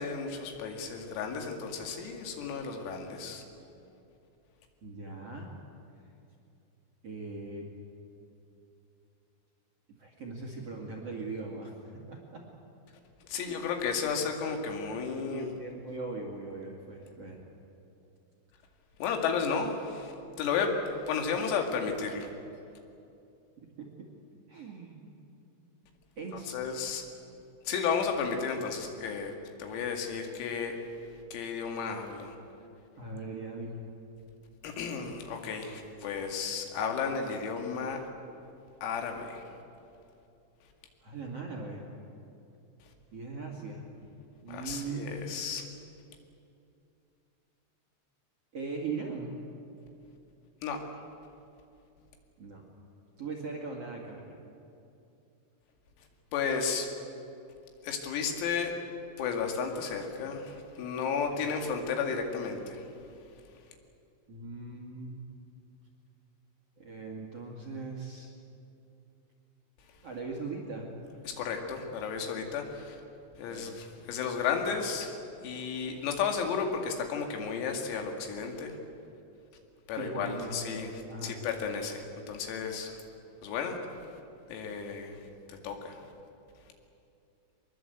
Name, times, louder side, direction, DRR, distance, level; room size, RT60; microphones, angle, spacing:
voice 1, 0.0-3.4 13.3-15.5 19.0-22.3 26.3-27.0 27.7-29.3 29.6-30.8 31.3-32.4 34.6-38.1 38.8-39.4 44.5-45.6 50.6-50.8 56.3-56.9 57.8-58.7 59.2-62.8 71.3-73.0 73.4-75.2 75.4-78.8 79.9-83.0 83.4-83.8 84.5-85.2 85.5-86.0, left 6 dB, 90° left, 3 dB, 4.9 m, -33 dB
voice 2, 4.8-5.5 7.0-7.7 10.0-12.4 13.4-13.7 15.3-17.4 23.8-24.1 24.5-25.0 26.2-26.6 33.0-33.8 41.0-41.9 43.1-43.8 44.4-45.3 48.5-49.3 52.4-52.6 53.2-54.4 64.3-65.2 66.8-68.3 70.0-70.9 73.5-73.8 79.9-81.4, right 3 dB, 45° right, 0 dB, 2.1 m, -40 dB
24.0 x 21.0 x 8.1 m, 2.7 s
omnidirectional pair, 6.0 m